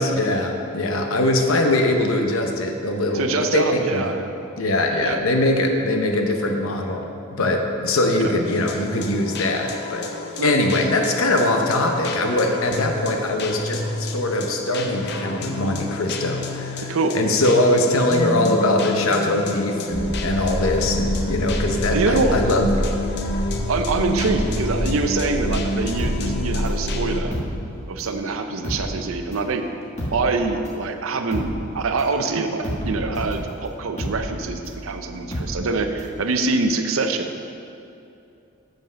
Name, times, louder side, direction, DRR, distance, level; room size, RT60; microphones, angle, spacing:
voice 1, 0.0-4.1 4.6-10.1 10.4-22.9, left 1 dB, 85° left, 3 dB, 0.8 m, -22 dB
voice 2, 3.1-4.3 5.0-5.2 10.4-10.7 16.8-17.2 21.9-22.4 23.7-27.3 27.9-29.7 30.1-37.3, right 3 dB, 85° right, 6 dB, 0.6 m, -24 dB
sound 1, 8.5-27.2, left 2 dB, 55° left, 0.6 m, -30 dB
sound 2, 19.9-27.2, equal, 60° right, 1.1 m, -27 dB
sound 3, 26.0-28.2 28.5-36.2 36.5-36.6, equal, 35° left, 1.4 m, -31 dB
7.3 x 5.5 x 6.2 m, 2.7 s
head